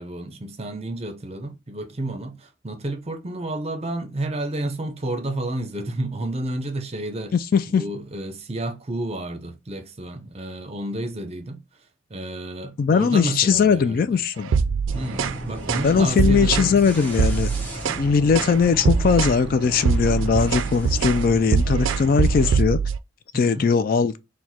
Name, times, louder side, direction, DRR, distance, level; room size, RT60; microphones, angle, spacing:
voice 1, 0.0-7.4 7.7-11.6 12.1-14.2 14.9-17.1 23.3-23.7, right 1 dB, 30° right, 0.7 m, -31 dB
voice 2, 7.3-7.8 12.8-14.5 15.8-17.5 18.0-22.8 23.3-24.1, left 5 dB, 50° left, 0.3 m, -20 dB
sound 1, 14.4-15.4 15.7-15.9 16.2-16.7 17.1-18.1 18.3-18.6 18.8-19.4 19.7-23.0, right 5 dB, 85° right, 0.4 m, -22 dB
sound 2, 14.9-22.5, right 1 dB, 10° left, 1.0 m, -35 dB
4.5 x 2.2 x 4.2 m
head